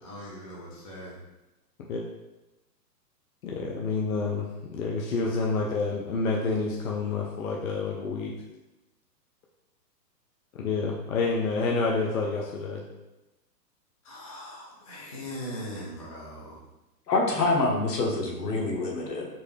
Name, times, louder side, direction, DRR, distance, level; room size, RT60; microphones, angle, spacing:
voice 1, 0.0-1.2 14.0-16.6, equal, 25° left, -7 dB, 0.4 m, -40 dB
voice 2, 3.4-8.3 10.5-12.8, left 4 dB, 55° left, -2 dB, 0.7 m, -28 dB
voice 3, 17.1-19.3, left 2 dB, 75° left, 0 dB, 1.3 m, -26 dB
4.6 x 3.1 x 3.3 m, 1.0 s
hypercardioid pair, 155°, 50 cm